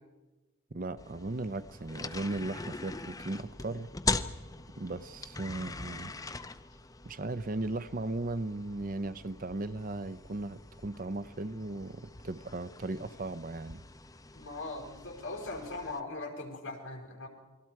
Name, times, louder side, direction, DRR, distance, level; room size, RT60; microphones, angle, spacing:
voice 1, 0.7-3.9 4.7-6.1 7.0-13.8, right 2 dB, 40° right, 0.6 m, -37 dB
sound 1, 1.0-16.0, left 3 dB, 15° left, 0.7 m, -41 dB
voice 2, 14.3-17.3, left 2 dB, 65° left, 5.4 m, -40 dB
29.5 x 22.5 x 4.7 m
head